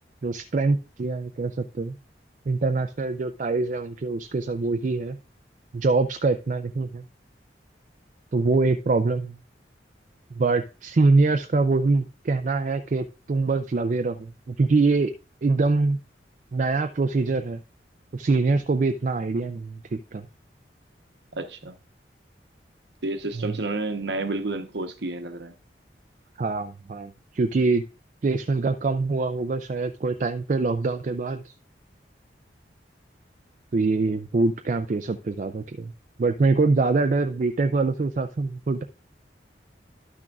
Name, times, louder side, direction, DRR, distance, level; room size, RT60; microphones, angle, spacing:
voice 1, 0.2-1.9 2.5-5.2 5.7-7.0 8.3-9.4 10.3-15.1 15.4-16.0 16.5-17.6 18.1-20.3 23.4-23.5 26.4-27.8 28.2-31.5 33.7-35.9 36.2-38.8, right 3 dB, 45° right, 0.4 m, -24 dB
voice 2, 21.3-21.8 23.0-25.5, right 2 dB, 75° right, 1.0 m, -30 dB
12.0 x 6.1 x 2.4 m
head